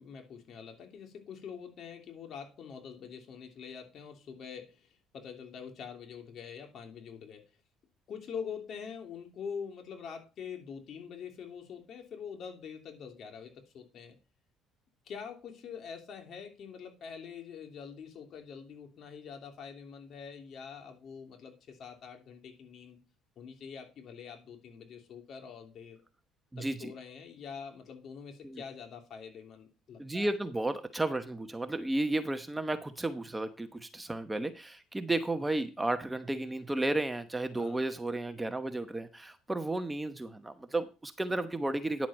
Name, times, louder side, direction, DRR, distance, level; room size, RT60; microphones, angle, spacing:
voice 1, 0.0-7.4 8.1-14.2 15.0-23.0 23.4-26.0 26.6-30.3 37.5-37.8, left 6 dB, 55° left, 3 dB, 3.0 m, -45 dB
voice 2, 26.5-26.9 28.4-28.6 30.0-42.1, right 2 dB, 10° right, 9 dB, 1.0 m, -33 dB
10.5 x 7.4 x 4.3 m, 0.30 s
supercardioid pair, 85°, 0 cm